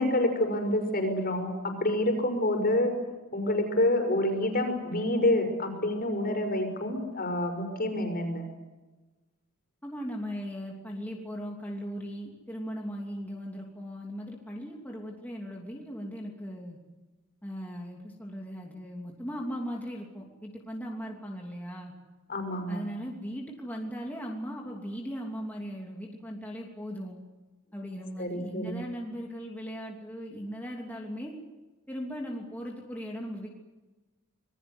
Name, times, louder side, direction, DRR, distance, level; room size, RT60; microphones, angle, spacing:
voice 1, 0.0-2.9 3.3-8.4 22.3-22.9 28.2-28.8, left 1 dB, 45° left, 6 dB, 5.7 m, -27 dB
voice 2, 9.8-16.8 17.4-21.9 22.7-27.2 27.7-31.4 31.9-33.5, equal, 10° left, -1 dB, 3.0 m, -38 dB
26.5 x 21.5 x 8.1 m, 1.2 s
head